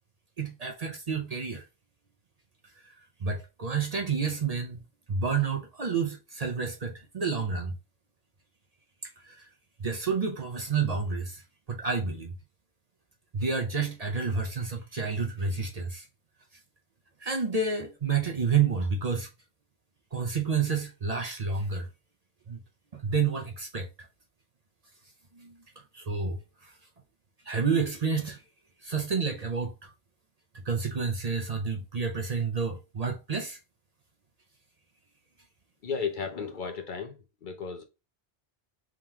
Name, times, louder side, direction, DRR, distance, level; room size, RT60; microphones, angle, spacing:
voice 1, 0.4-1.6 3.2-4.8 5.1-7.7 9.2-9.4 9.8-11.4 11.7-12.3 13.3-16.1 17.2-19.3 20.1-21.9 22.5-22.6 22.9-23.9 25.4-25.5 25.9-26.7 27.5-28.4 28.8-29.9 30.6-33.6, right 5 dB, 45° right, 0.6 m, -29 dB
voice 2, 35.8-37.8, left 5 dB, 55° left, 0.8 m, -34 dB
3.7 x 3.0 x 3.6 m
omnidirectional pair, 1.1 m